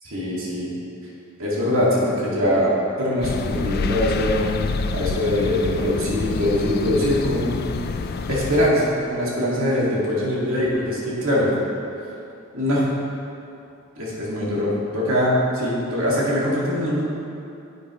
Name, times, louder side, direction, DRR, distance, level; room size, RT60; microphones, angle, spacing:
voice 1, 0.0-0.7 1.4-2.7 3.0-4.6 4.9-7.5 8.3-11.5 12.5-12.9 14.0-17.0, left 1 dB, 75° right, -5 dB, 2.1 m, -22 dB
sound 1, 3.2-8.7, left 4 dB, 45° left, 0.3 m, -27 dB
10.0 x 9.3 x 3.1 m, 2.7 s
head